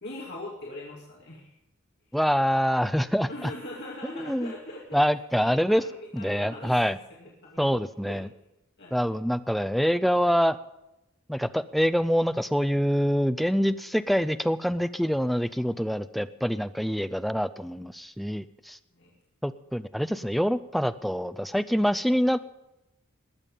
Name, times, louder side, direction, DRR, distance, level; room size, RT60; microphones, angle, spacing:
voice 1, 0.0-1.5 3.3-5.0 5.3-6.9 7.2-7.7 8.0-8.2 8.8-9.0 18.9-19.1, left 1 dB, 50° left, -4 dB, 2.5 m, -41 dB
voice 2, 2.1-3.5 4.1-4.5 4.9-5.8 6.1-7.0 7.6-8.3 8.9-10.6 11.3-18.8 19.4-22.4, equal, ahead, 12 dB, 0.4 m, -25 dB
20.5 x 7.4 x 5.4 m, 0.90 s
head